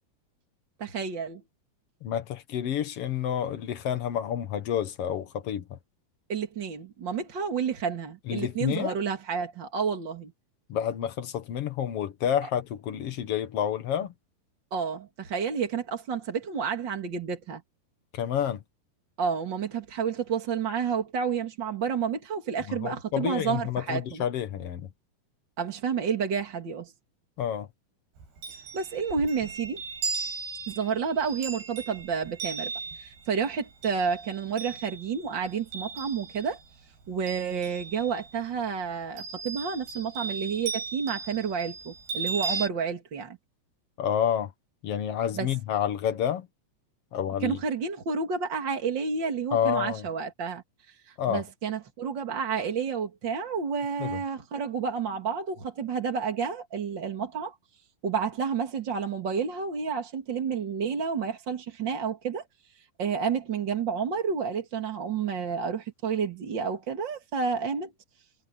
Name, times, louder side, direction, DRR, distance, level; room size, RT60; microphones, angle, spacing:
voice 1, 0.8-1.4 6.3-10.3 14.7-17.6 19.2-24.2 25.6-26.9 28.7-29.8 30.7-36.6 37.1-43.4 45.3-45.5 47.4-57.5 58.0-62.4 63.0-67.9, right 6 dB, 40° right, 1.9 m, -30 dB
voice 2, 2.0-5.8 8.3-9.0 10.7-14.1 18.1-18.6 22.7-24.9 27.4-27.7 44.0-44.5 44.8-46.5 47.1-47.6 49.5-50.0 51.2-51.4 54.0-54.2, left 9 dB, 80° left, 1.3 m, -29 dB
Chime, 28.2-36.7 37.0-38.4 39.2-42.7, right 4 dB, 90° right, 8.8 m, -37 dB
omnidirectional pair, 4.6 m